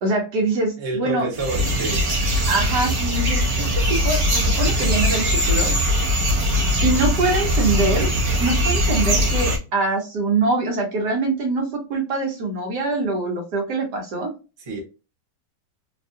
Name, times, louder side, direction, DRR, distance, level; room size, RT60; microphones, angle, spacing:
voice 1, 0.0-1.3 2.5-3.4 3.9-5.7 6.8-8.1 8.4-14.3, right 3 dB, 70° right, 1.4 m, -23 dB
voice 2, 0.8-2.1 5.4-5.9 6.9-7.5 14.6-14.8, right 2 dB, 25° right, 0.7 m, -30 dB
sound 1, 1.3-9.6, equal, 50° right, 1.1 m, -21 dB
3.4 x 2.2 x 2.6 m
omnidirectional pair, 1.9 m